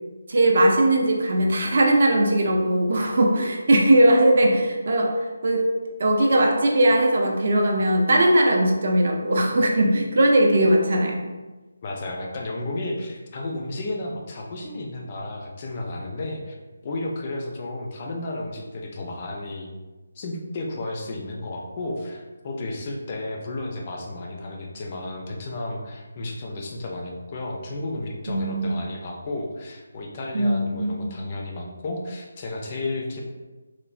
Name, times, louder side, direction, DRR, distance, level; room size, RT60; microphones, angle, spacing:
voice 1, 0.3-5.1 5.4-5.7 6.0-11.2 28.3-28.7 30.3-31.1, right 1 dB, 50° right, 1 dB, 0.4 m, -19 dB
voice 2, 11.8-16.6 16.8-19.7 20.2-33.2, left 2 dB, 30° left, 0 dB, 0.3 m, -32 dB
3.1 x 2.0 x 2.4 m, 1.2 s
figure-of-eight pair, 170°, 0 cm